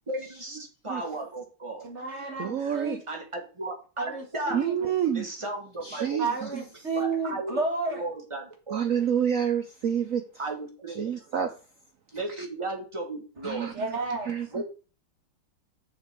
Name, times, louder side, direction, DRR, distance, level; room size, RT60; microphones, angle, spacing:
voice 1, 0.1-0.6 0.8-1.8 2.6-2.8 3.1-4.6 5.1-6.4 6.9-7.6 7.9-8.8 10.4-11.1 12.1-13.8 14.5-14.6, right 2 dB, 15° right, 1.3 m, -35 dB
voice 2, 1.8-3.0 4.0-4.9 6.2-8.0 13.7-14.3, right 3 dB, 35° right, 1.9 m, -31 dB
voice 3, 2.4-3.0 4.5-5.3 5.8-6.6 8.7-10.2 10.9-11.5 12.4-12.5 13.4-13.9 14.2-14.5, right 8 dB, 80° right, 0.7 m, -28 dB
6.9 x 6.7 x 4.6 m
omnidirectional pair, 2.3 m